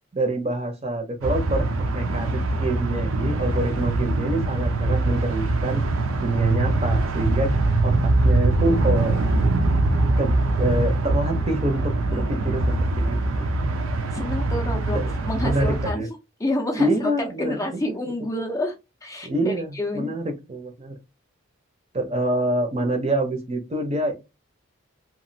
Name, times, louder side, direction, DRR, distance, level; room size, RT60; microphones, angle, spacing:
voice 1, 0.1-1.7 1.9-5.8 6.2-7.5 7.8-9.2 10.2-10.3 10.6-13.5 14.9-15.1 15.4-16.1 16.8-18.0 19.2-21.0 21.9-24.1, right 1 dB, 30° right, 0.6 m, -26 dB
sound 1, 1.2-15.9, right 2 dB, 80° right, 0.5 m, -23 dB
voice 2, 12.1-12.5 14.1-15.0 15.2-16.0 16.4-16.9 17.2-18.7 19.0-20.1, left 1 dB, 15° left, 0.4 m, -28 dB
2.9 x 2.4 x 2.6 m
head